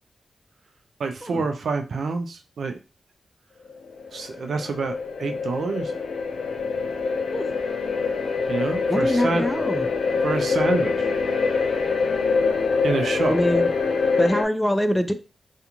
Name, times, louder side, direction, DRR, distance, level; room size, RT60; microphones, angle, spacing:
voice 1, 1.0-2.8 4.1-5.9 8.5-9.4 10.2-11.1 12.8-13.3, right 4 dB, 80° right, 6 dB, 0.4 m, -27 dB
sound 1, 3.7-14.4, left 4 dB, 80° left, 0.4 m, -25 dB
voice 2, 8.9-9.9 13.3-13.7 14.2-15.1, equal, 5° left, 9 dB, 0.4 m, -23 dB
2.5 x 2.3 x 2.9 m, 0.32 s
cardioid pair, 50°, 0 cm